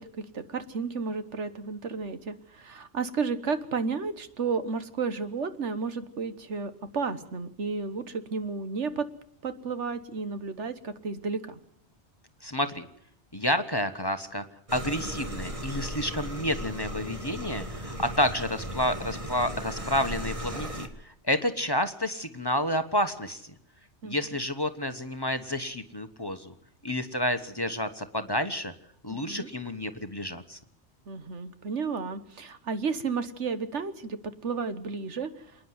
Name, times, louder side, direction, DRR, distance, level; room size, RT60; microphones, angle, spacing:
voice 1, 0.0-9.1 9.4-11.6 24.0-24.2 29.1-29.5 31.1-34.2 34.4-35.3, right 5 dB, 80° right, 11 dB, 1.7 m, -32 dB
voice 2, 12.4-12.9 13.3-14.4 14.7-23.5 24.0-26.5 26.8-28.7 29.0-30.6, left 1 dB, 20° left, 8 dB, 1.2 m, -30 dB
sound 1, 14.7-20.9, equal, 30° right, 1.9 m, -36 dB
27.5 x 10.0 x 9.5 m, 0.73 s
omnidirectional pair, 1.2 m